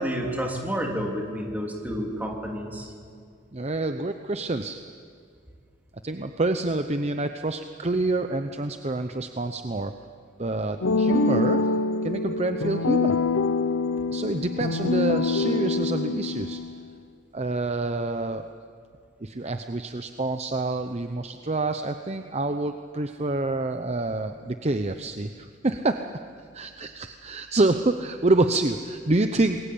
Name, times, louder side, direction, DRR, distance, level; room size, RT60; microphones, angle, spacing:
voice 1, 0.0-2.9, equal, 10° right, 0 dB, 3.3 m, -30 dB
voice 2, 3.5-4.8 6.0-9.9 10.4-11.7 12.0-13.2 14.1-16.6 17.3-18.5 19.2-26.2 26.5-29.6, right 2 dB, 30° right, 7 dB, 0.8 m, -27 dB
sound 1, 10.8-16.8, left 3 dB, 70° left, 0.8 m, -25 dB
27.5 x 21.5 x 8.6 m, 2.2 s
head